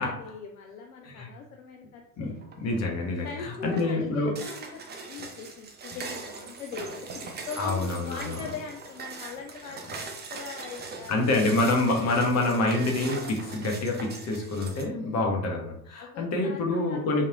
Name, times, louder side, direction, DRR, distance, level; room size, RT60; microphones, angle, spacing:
voice 1, 0.0-2.4 3.2-4.8 5.1-11.9 14.9-15.3 16.0-17.3, left 5 dB, 65° left, 2 dB, 0.7 m, -41 dB
voice 2, 2.2-4.3 7.6-8.4 11.1-17.3, left 2 dB, 35° left, 1 dB, 1.2 m, -27 dB
sound 1, 2.4-2.8 3.2-14.8, right 4 dB, 20° right, 0.8 m, -41 dB
5.5 x 3.3 x 2.5 m, 0.71 s
figure-of-eight pair, 70°, 46 cm